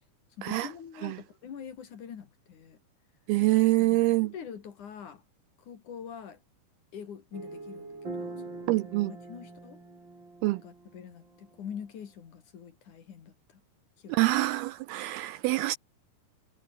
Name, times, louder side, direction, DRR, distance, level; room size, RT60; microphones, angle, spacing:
voice 1, 0.4-2.8 3.8-5.2 5.6-6.4 6.9-8.7 9.0-9.8 10.6-13.6 14.0-14.2, left 7 dB, 50° left, 3.4 m, -44 dB
voice 2, 3.3-4.3 8.7-9.1 10.4-10.6 14.1-15.8, right 19 dB, 80° right, 2.3 m, -25 dB
sound 1, 7.3-11.8, right 3 dB, 25° right, 6.3 m, -43 dB
omnidirectional pair, 4.9 m